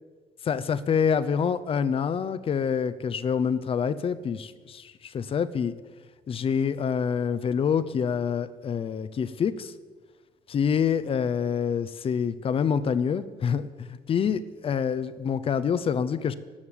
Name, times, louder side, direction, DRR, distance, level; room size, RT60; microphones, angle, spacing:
voice 1, 0.4-5.7 6.3-9.7 10.5-16.4, left 7 dB, 35° left, 14 dB, 0.6 m, -26 dB
14.5 x 6.5 x 8.9 m, 1.4 s
cardioid pair, 170°, 16 cm